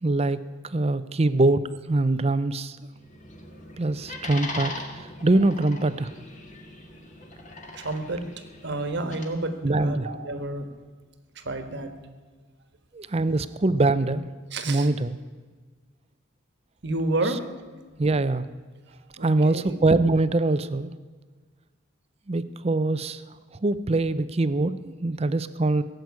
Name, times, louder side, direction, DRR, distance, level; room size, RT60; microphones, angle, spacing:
voice 1, 0.0-2.8 3.8-6.1 9.6-10.1 12.9-14.3 14.7-15.1 18.0-18.5 19.2-20.9 22.3-23.2 23.6-25.8, right 2 dB, 30° right, 14 dB, 0.5 m, -23 dB
sound 1, 2.9-9.2, left 2 dB, 35° left, 2.0 m, -40 dB
voice 2, 7.7-8.2 8.6-10.7 11.3-11.9 14.5-14.9 16.8-17.5 18.9-19.7, right 2 dB, 55° right, 8 dB, 1.4 m, -30 dB
17.0 x 7.9 x 9.4 m, 1.5 s
head